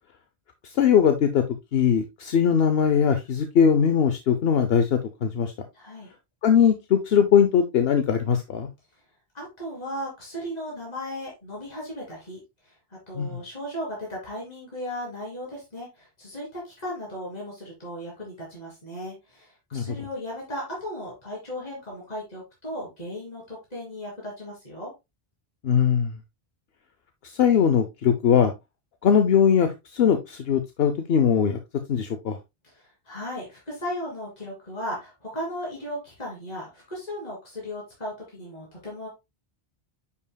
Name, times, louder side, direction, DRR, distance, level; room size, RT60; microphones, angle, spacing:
voice 1, 0.7-1.4 1.7-5.5 6.4-8.7 13.1-13.4 19.7-19.8 25.6-26.2 27.2-28.5 29.0-31.6 31.9-32.4, left 7 dB, 70° left, 1.0 m, -20 dB
voice 2, 5.7-6.1 9.3-12.8 13.1-24.9 32.6-39.1, equal, 40° left, 3.1 m, -36 dB
9.6 x 5.7 x 2.2 m
omnidirectional pair, 1.0 m